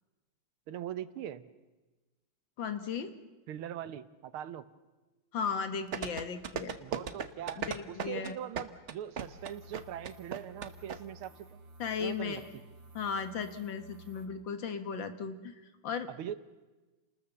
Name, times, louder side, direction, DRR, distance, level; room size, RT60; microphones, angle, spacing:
voice 1, 0.7-1.4 3.5-4.7 6.8-11.6 12.0-12.4 16.1-16.3, right 10 dB, 90° right, 14 dB, 1.8 m, -41 dB
voice 2, 2.6-3.1 5.3-6.7 7.6-8.4 11.8-12.5 12.9-16.1, left 6 dB, 65° left, 9 dB, 2.2 m, -36 dB
Horse Galloping, 5.9-11.0 11.2-11.3, right 6 dB, 45° right, 1.1 m, -36 dB
sound 1, 9.2-14.3, right 1 dB, 65° right, 3.4 m, -54 dB
29.0 x 20.0 x 6.9 m, 1.2 s
omnidirectional pair, 2.3 m